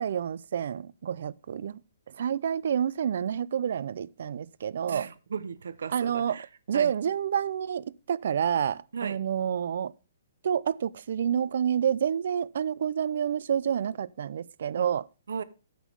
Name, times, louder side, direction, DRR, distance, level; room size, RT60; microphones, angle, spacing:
voice 1, 0.0-1.8 2.1-5.1 5.9-6.4 6.7-9.9 10.4-15.1, right 8 dB, 50° right, 0.4 m, -28 dB
voice 2, 4.9-6.4 6.7-6.9 8.9-9.2 14.8-14.9 15.3-15.4, right 6 dB, 75° right, 0.7 m, -36 dB
9.3 x 6.3 x 4.6 m
hypercardioid pair, 180°, 0 cm